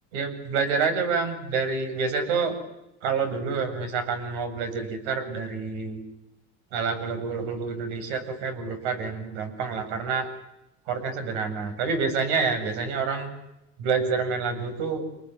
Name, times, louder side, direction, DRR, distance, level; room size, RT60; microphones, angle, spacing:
voice 1, 0.1-2.6 3.0-6.0 6.7-10.3 10.9-13.3 13.8-15.1, right 5 dB, 75° right, 7 dB, 7.8 m, -28 dB
28.5 x 20.0 x 9.8 m, 0.90 s
cardioid pair, 145°, 34 cm